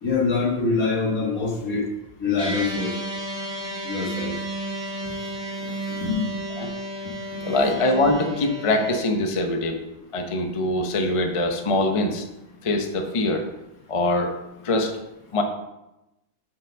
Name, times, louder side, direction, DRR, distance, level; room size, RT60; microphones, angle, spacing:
voice 1, 0.0-1.8 2.2-2.9 3.8-4.3 5.6-5.7 6.0-6.3 7.6-7.8, left 4 dB, 60° left, -1 dB, 1.9 m, -24 dB
sound 1, 2.4-9.0, right 1 dB, 40° right, 2.1 m, -32 dB
voice 2, 7.4-9.8 10.1-12.2 12.6-13.5 13.9-14.3 14.6-15.0 15.3-15.4, left 2 dB, 35° left, 4 dB, 0.5 m, -23 dB
5.7 x 5.1 x 6.3 m, 0.94 s
omnidirectional pair, 1.7 m